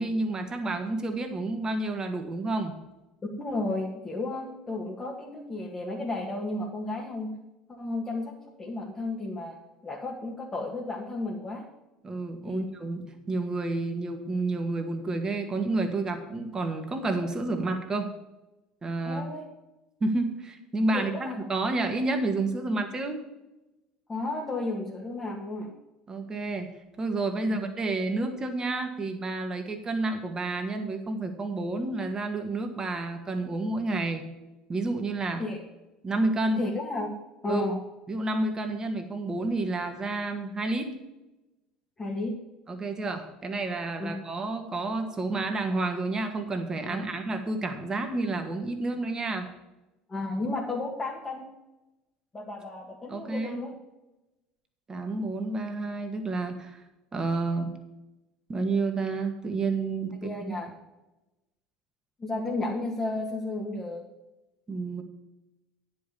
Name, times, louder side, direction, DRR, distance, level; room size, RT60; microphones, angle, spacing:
voice 1, 0.0-2.7 12.0-18.1 18.8-19.3 20.0-23.2 26.1-26.7 27.0-34.2 34.7-35.4 36.0-36.6 37.5-37.6 38.1-40.9 42.7-49.5 53.1-53.6 54.9-56.8 57.1-57.7 58.5-60.5 64.7-65.0, right 2 dB, 25° right, 5 dB, 1.8 m, -30 dB
voice 2, 3.4-7.3 7.7-9.6 9.8-11.7 12.4-12.6 19.0-19.4 21.1-21.4 24.1-25.7 27.5-27.6 35.4-35.6 36.6-37.1 37.4-37.8 42.0-42.4 44.0-44.1 46.9-47.2 50.1-51.5 52.3-53.8 60.2-60.7 62.2-64.0, left 2 dB, 25° left, -2 dB, 2.0 m, -33 dB
9.9 x 5.6 x 7.0 m, 1.0 s
hypercardioid pair, 70°, 3 cm